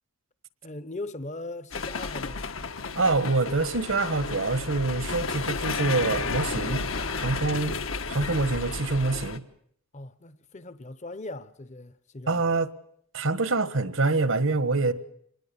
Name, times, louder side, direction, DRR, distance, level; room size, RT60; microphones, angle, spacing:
voice 1, 0.6-2.5 9.9-12.6, left 2 dB, 35° left, 0.9 m, -39 dB
sound 1, 1.7-9.4, left 4 dB, 70° left, 1.4 m, -32 dB
voice 2, 2.9-6.8 7.2-7.8 8.0-9.4 12.3-12.7 13.1-14.9, right 3 dB, 70° right, 1.5 m, -25 dB
26.0 x 20.5 x 7.0 m
head